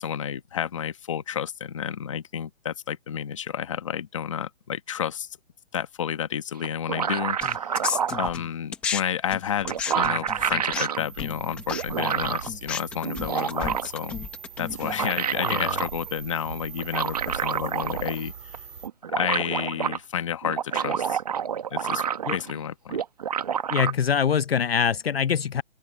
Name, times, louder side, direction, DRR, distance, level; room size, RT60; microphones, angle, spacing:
voice 1, 0.0-5.3 5.7-7.7 8.2-14.2 14.6-18.3 19.1-21.2 21.7-23.0, left 9 dB, 25° left, 1.2 m, -31 dB
sound 1, 6.6-8.3 9.3-9.4 9.6-11.0 11.7-12.5 13.0-14.1 14.7-15.9 16.8-18.2 18.5-18.6 18.8-20.0 20.4-22.6 22.9-23.9, right 8 dB, 35° right, 1.2 m, -28 dB
sound 2, 7.4-9.0 9.3-15.0, left 7 dB, 5° left, 0.9 m, -34 dB
sound 3, 11.0-18.9, right 6 dB, 70° right, 2.6 m, -41 dB
voice 2, 15.4-15.8 22.3-22.4 23.7-25.6, left 7 dB, 60° left, 0.7 m, -24 dB
open air
hypercardioid pair, 175°, 34 cm